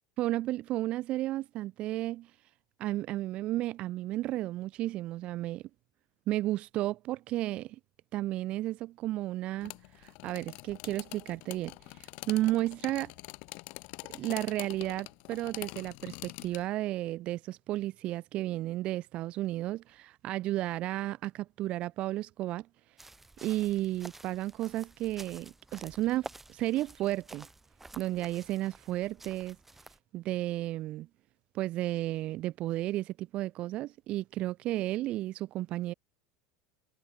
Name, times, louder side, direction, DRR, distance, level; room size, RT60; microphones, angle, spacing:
voice 1, 0.2-2.3 2.8-5.6 6.3-7.8 8.1-9.7 10.0-13.1 14.1-22.7 23.4-27.5 28.0-29.6 30.1-31.1 31.5-35.9, right 15 dB, 50° right, 1.9 m, -33 dB
sound 1, 9.6-16.7, left 29 dB, 65° left, 2.7 m, -45 dB
sound 2, 23.0-30.0, right 2 dB, 10° right, 6.3 m, -50 dB
supercardioid pair, 110°, 2 cm